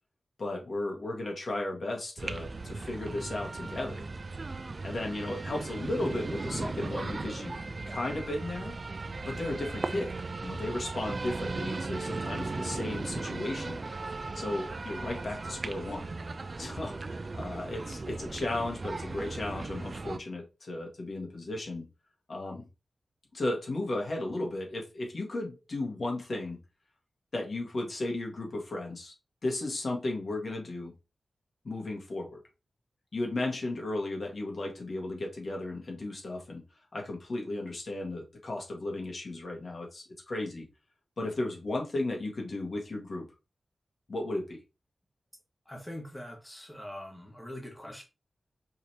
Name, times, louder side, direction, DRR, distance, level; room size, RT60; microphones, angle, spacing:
voice 1, 0.4-4.0 4.8-7.5 7.9-8.7 9.2-10.1 10.4-13.8 14.3-16.1 16.6-21.8 22.3-22.6 23.3-26.6 27.3-29.1 29.4-30.9 31.6-32.4 33.1-36.6 36.9-40.6 41.2-43.3 44.1-44.6, left 2 dB, 60° left, 1.7 m, -35 dB
sound 1, 2.2-20.2, right 3 dB, 50° right, 0.5 m, -37 dB
voice 2, 45.6-48.0, left 1 dB, 5° left, 1.6 m, -43 dB
5.5 x 3.4 x 2.9 m
wide cardioid pair, 65°, 0 cm